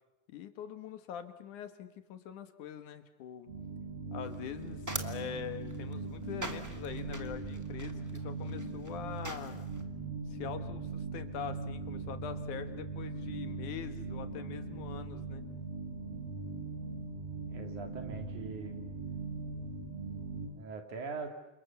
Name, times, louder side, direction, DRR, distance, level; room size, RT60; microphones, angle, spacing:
voice 1, 0.3-3.5 4.1-9.7 10.3-15.4, left 8 dB, 80° left, 9 dB, 3.0 m, -43 dB
sound 1, 3.5-20.5, right 3 dB, 50° right, 7.5 m, -40 dB
sound 2, 4.2-9.8, right 1 dB, 10° right, 0.8 m, -44 dB
voice 2, 17.5-18.8 20.5-21.3, right 4 dB, 75° right, 5 dB, 4.1 m, -42 dB
29.5 x 26.5 x 7.1 m, 0.93 s
omnidirectional pair, 3.5 m